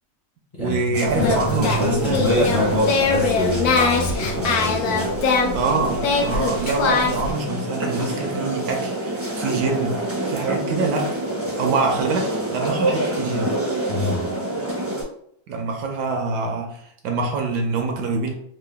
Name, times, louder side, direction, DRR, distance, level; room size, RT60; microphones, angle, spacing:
voice 1, 0.6-2.8 5.5-11.1 11.6-13.5 15.5-18.3, right 3 dB, 70° right, 3 dB, 1.1 m, -25 dB
sound 1, 0.9-15.0, right 1 dB, 15° right, 0.5 m, -27 dB
Singing, 1.1-7.3, left 4 dB, 70° left, 1.0 m, -22 dB
voice 2, 1.2-5.1 13.9-14.3, left 1 dB, 30° left, -5 dB, 0.7 m, -25 dB
3.7 x 2.2 x 3.3 m, 0.67 s
omnidirectional pair, 2.0 m